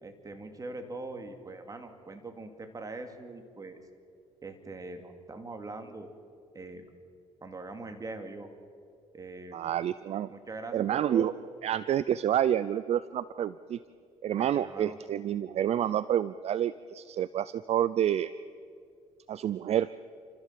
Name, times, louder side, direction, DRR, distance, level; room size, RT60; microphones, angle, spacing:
voice 1, 0.0-3.8 4.4-6.1 6.5-6.8 7.4-8.5 9.1-9.7 10.3-11.3 14.3-15.0, right 2 dB, 25° right, 6 dB, 2.7 m, -42 dB
voice 2, 9.5-10.3 10.7-11.3 11.6-13.8 14.2-18.3 19.3-19.9, right 10 dB, 55° right, 16 dB, 0.5 m, -28 dB
29.5 x 14.0 x 7.6 m, 2.3 s
cardioid pair, 85°, 13 cm